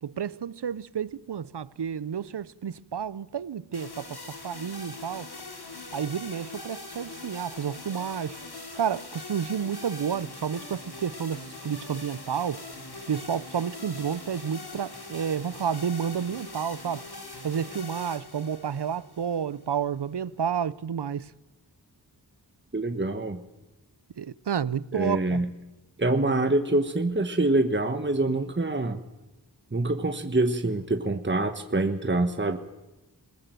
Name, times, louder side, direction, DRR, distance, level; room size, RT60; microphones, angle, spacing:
voice 1, 0.0-5.3 5.9-8.4 8.7-12.6 13.1-17.1 17.4-21.3 24.2-25.4, right 8 dB, 80° right, 0.8 m, -30 dB
sound 1, 3.7-19.8, left 3 dB, 70° left, 3.8 m, -42 dB
voice 2, 22.7-23.4 24.9-25.5 26.0-29.0 29.7-32.6, right 2 dB, 30° right, 1.4 m, -25 dB
21.0 x 20.0 x 9.2 m
wide cardioid pair, 55°, 40 cm